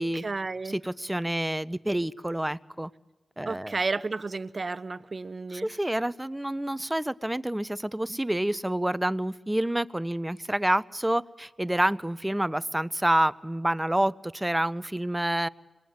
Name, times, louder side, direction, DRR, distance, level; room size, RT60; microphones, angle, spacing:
voice 1, 0.0-0.7 3.4-5.7, right 3 dB, 50° right, 16 dB, 0.9 m, -32 dB
voice 2, 0.6-2.9 3.4-3.8 5.5-15.5, right 1 dB, 15° right, 18 dB, 0.8 m, -28 dB
25.5 x 20.5 x 9.4 m, 1.1 s
cardioid pair, 45°, 0 cm